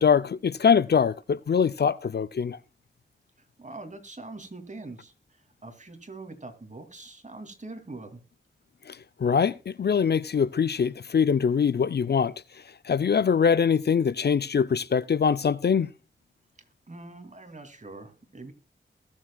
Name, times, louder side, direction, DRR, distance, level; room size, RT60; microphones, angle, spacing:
voice 1, 0.0-2.6 8.9-12.3 12.8-15.9, left 6 dB, 55° left, 0.5 m, -23 dB
voice 2, 3.6-8.2 16.9-18.5, right 2 dB, 35° right, 2.6 m, -43 dB
20.5 x 7.5 x 2.3 m
cardioid pair, 45°, 20 cm